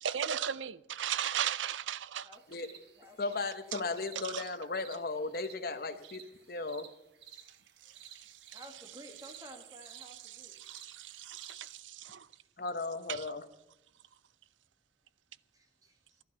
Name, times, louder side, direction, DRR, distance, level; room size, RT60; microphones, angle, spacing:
voice 1, 0.0-2.3 3.7-3.8 4.2-4.4 7.8-8.8 9.9-12.3 13.1-13.3, right 9 dB, 85° right, 0.5 m, -37 dB
voice 2, 2.2-3.2 8.5-10.6 15.5-16.2, equal, 20° right, 2.0 m, -53 dB
sound 1, 2.3-11.8, right 8 dB, 65° right, 1.5 m, -56 dB
voice 3, 3.2-6.2 6.5-6.9 12.6-13.4, left 3 dB, 50° left, 1.0 m, -36 dB
12.5 x 11.5 x 6.8 m
head